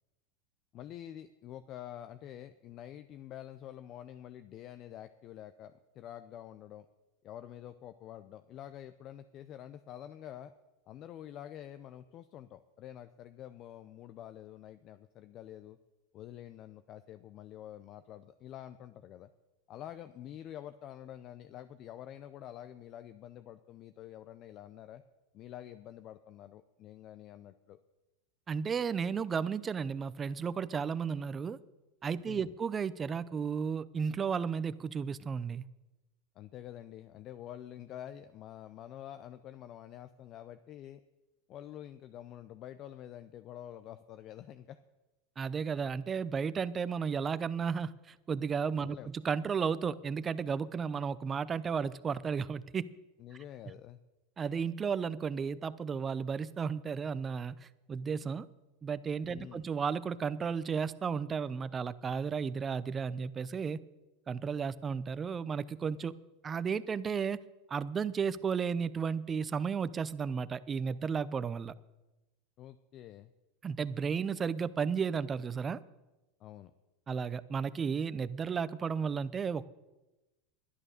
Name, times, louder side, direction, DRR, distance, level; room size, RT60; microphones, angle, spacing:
voice 1, 0.7-6.9 7.2-10.5 10.9-15.8 16.1-19.3 19.7-25.0 25.3-27.8 32.2-32.5 36.3-41.0 41.5-44.8 48.8-49.1 53.2-54.0 59.3-59.7 72.6-73.3 76.4-76.7, left 11 dB, 45° left, 11 dB, 0.6 m, -47 dB
voice 2, 28.5-31.6 32.0-35.6 45.4-52.9 54.4-58.5 58.8-63.8 64.3-66.1 66.4-67.4 67.7-71.7 73.6-75.8 77.1-79.7, right 6 dB, 25° right, 16 dB, 0.6 m, -33 dB
11.0 x 11.0 x 6.6 m, 1.1 s
hypercardioid pair, 105°, 0 cm